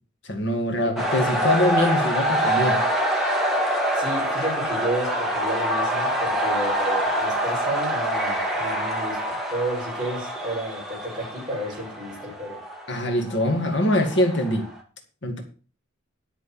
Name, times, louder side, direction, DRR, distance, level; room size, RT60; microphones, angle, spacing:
voice 1, 0.2-2.8 12.9-14.7 15.2-15.4, left 1 dB, 60° left, 2.2 m, -23 dB
sound 1, 1.0-14.8, right 1 dB, ahead, 2.3 m, -26 dB
voice 2, 3.9-12.6, right 1 dB, 20° right, 6.9 m, -32 dB
11.0 x 6.3 x 7.3 m
head